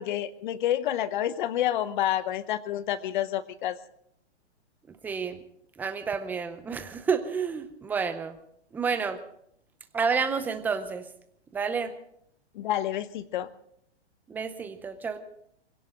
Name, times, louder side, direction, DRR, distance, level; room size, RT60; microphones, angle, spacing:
voice 1, 0.0-3.8 12.5-13.5, left 12 dB, 45° left, 15 dB, 0.9 m, -29 dB
voice 2, 5.0-5.4 5.8-8.4 8.7-9.2 9.9-11.0 11.5-11.9 14.3-15.2, right 5 dB, 5° right, 9 dB, 0.6 m, -29 dB
22.5 x 17.0 x 3.8 m, 0.70 s
hypercardioid pair, 150°, 34 cm